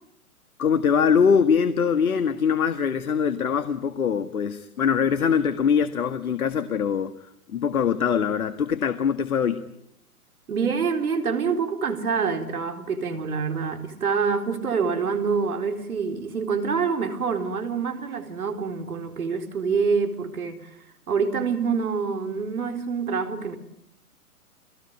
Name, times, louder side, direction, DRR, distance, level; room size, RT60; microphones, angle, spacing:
voice 1, 0.6-7.1 7.5-9.6, left 7 dB, 70° left, 11 dB, 1.7 m, -22 dB
voice 2, 10.5-20.7 21.1-23.6, right 5 dB, 70° right, 7 dB, 4.3 m, -26 dB
30.0 x 20.0 x 9.0 m, 0.76 s
figure-of-eight pair, 125°, 45 cm